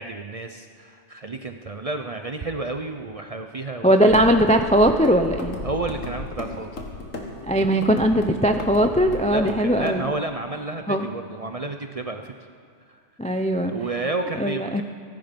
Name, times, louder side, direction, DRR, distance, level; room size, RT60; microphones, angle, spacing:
voice 1, 0.0-4.3 5.6-6.8 9.2-12.3 12.9-13.0 13.6-14.8, right 2 dB, 40° right, 6 dB, 0.6 m, -31 dB
voice 2, 3.8-5.6 7.4-10.0 10.9-11.1 13.2-13.7 14.4-14.8, equal, 10° left, 7 dB, 0.4 m, -19 dB
sound 1, 4.1-9.9, left 2 dB, 85° left, 2.1 m, -35 dB
23.5 x 11.5 x 5.2 m, 2.3 s
omnidirectional pair, 1.3 m